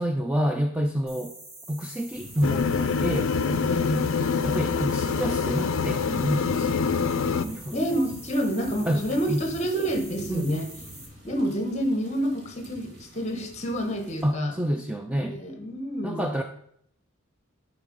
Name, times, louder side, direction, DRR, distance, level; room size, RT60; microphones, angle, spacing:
voice 1, 0.0-1.3 1.7-3.3 4.4-7.1 7.4-7.8 8.8-9.0 9.3-9.4 10.3-10.6 14.2-15.4 16.0-16.4, equal, 5° right, 4 dB, 0.3 m, -28 dB
sound 1, 1.1-11.1, right 1 dB, 30° right, 2.5 m, -45 dB
sound 2, 2.1-14.2, equal, 50° right, 2.5 m, -46 dB
sound 3, 2.4-7.4, left 5 dB, 65° left, 0.4 m, -25 dB
voice 2, 3.5-4.0 7.7-10.7 11.2-14.5 15.2-16.3, equal, 30° left, 5 dB, 1.2 m, -28 dB
10.5 x 3.9 x 5.2 m, 0.69 s
head